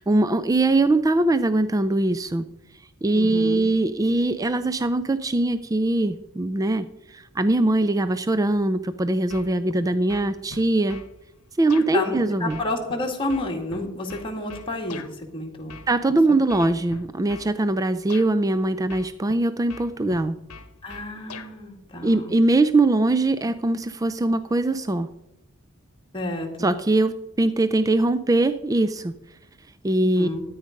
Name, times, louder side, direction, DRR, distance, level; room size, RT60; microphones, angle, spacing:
voice 1, 0.0-2.5 3.0-11.0 11.6-12.6 15.9-20.4 22.0-25.1 26.6-29.1 29.8-30.3, right 2 dB, 15° right, 12 dB, 0.4 m, -22 dB
voice 2, 3.1-3.6 11.9-15.8 20.8-22.4 26.1-26.7 30.1-30.4, left 2 dB, 25° left, 0 dB, 2.2 m, -30 dB
sound 1, 9.3-9.8 10.1-11.1 11.7-11.9 12.5-15.1 15.7-16.1 16.5-17.5 18.1-18.3 18.9-19.4 19.7-21.5, left 4 dB, 75° left, 1.0 m, -41 dB
13.0 x 9.4 x 5.2 m, 0.89 s
head